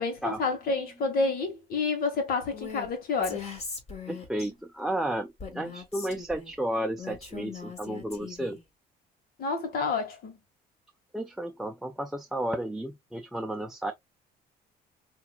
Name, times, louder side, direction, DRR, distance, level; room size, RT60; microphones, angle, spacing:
voice 1, 0.0-3.4 9.4-10.4, left 4 dB, 60° left, 1.3 m, -29 dB
Female speech woman speaking, 2.5-2.9 3.2-4.5 5.4-6.5 7.0-8.6, left 5 dB, 40° left, 2.2 m, -40 dB
voice 2, 4.1-8.6 11.1-13.9, right 1 dB, ahead, 0.5 m, -32 dB
5.7 x 2.5 x 2.4 m
cardioid pair, 110°, 17 cm